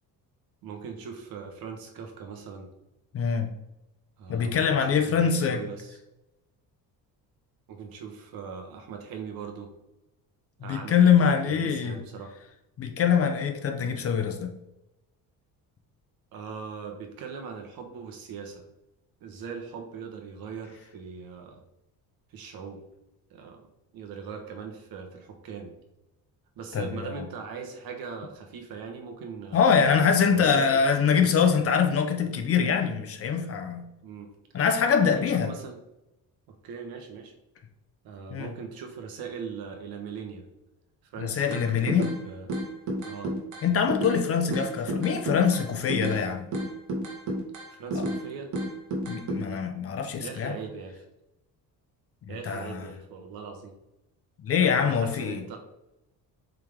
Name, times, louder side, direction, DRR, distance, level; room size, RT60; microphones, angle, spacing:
voice 1, 0.6-2.7 4.2-6.0 7.7-9.7 10.6-11.1 11.5-12.4 16.3-18.7 19.2-21.6 22.3-22.8 23.3-23.7 23.9-25.7 26.6-29.7 30.3-30.8 34.0-34.3 35.0-35.8 36.5-37.3 38.0-40.4 41.0-42.5 43.0-43.3 47.7-48.5 50.1-51.0 52.3-53.8 54.8-55.6, right 6 dB, 70° right, 4 dB, 1.3 m, -40 dB
voice 2, 3.1-3.5 4.3-5.6 10.6-11.9 12.8-14.5 26.7-27.2 29.5-33.9 34.5-35.5 38.3-38.5 41.2-42.1 43.6-46.5 47.9-48.0 49.1-50.6 52.3-52.8 54.4-55.4, left 6 dB, 40° left, 5 dB, 0.7 m, -24 dB
sound 1, 41.5-42.2 42.5-44.2 44.5-46.2 46.5-48.2 48.5-49.4, right 1 dB, 50° right, 1.6 m, -31 dB
7.6 x 3.5 x 3.6 m, 0.93 s
cardioid pair, 165°, 37 cm